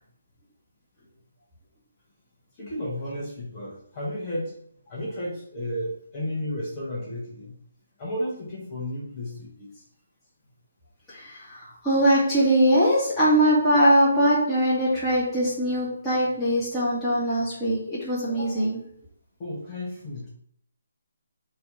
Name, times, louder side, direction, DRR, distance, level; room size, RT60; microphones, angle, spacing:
voice 1, 2.5-4.6 4.9-7.6 8.0-9.8 19.4-20.3, left 1 dB, 25° left, -6 dB, 1.5 m, -33 dB
voice 2, 11.1-18.8, equal, 5° left, -11 dB, 2.1 m, -22 dB
6.3 x 3.2 x 5.5 m, 0.69 s
hypercardioid pair, 160°, 0 cm